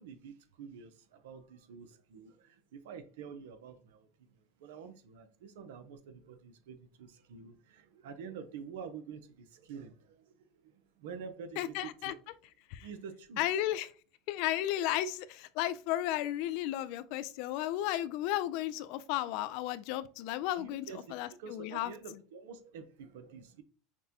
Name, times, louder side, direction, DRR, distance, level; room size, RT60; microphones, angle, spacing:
voice 1, 0.0-4.1 4.6-12.1 12.8-13.4 20.5-21.0 21.3-23.6, right 6 dB, 80° right, 0.6 m, -48 dB
voice 2, 11.6-12.1 12.7-12.9 13.4-13.9 14.3-21.9, left 13 dB, 65° left, 0.3 m, -34 dB
5.8 x 2.2 x 2.8 m
supercardioid pair, 105°, 0 cm